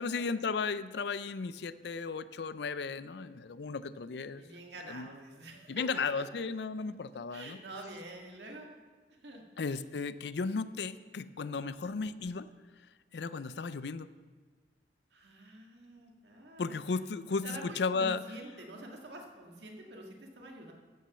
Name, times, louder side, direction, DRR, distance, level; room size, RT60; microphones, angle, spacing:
voice 1, 0.0-4.4 4.9-5.1 5.7-7.6 9.6-12.5 13.1-14.1 16.6-18.2, left 4 dB, 70° left, 15 dB, 0.5 m, -35 dB
voice 2, 4.4-6.2 7.3-8.7 9.1-9.4 9.7-9.8 15.1-16.8 17.4-20.7, right 1 dB, 75° right, 1 dB, 2.0 m, -47 dB
14.5 x 6.2 x 6.8 m, 1.4 s
head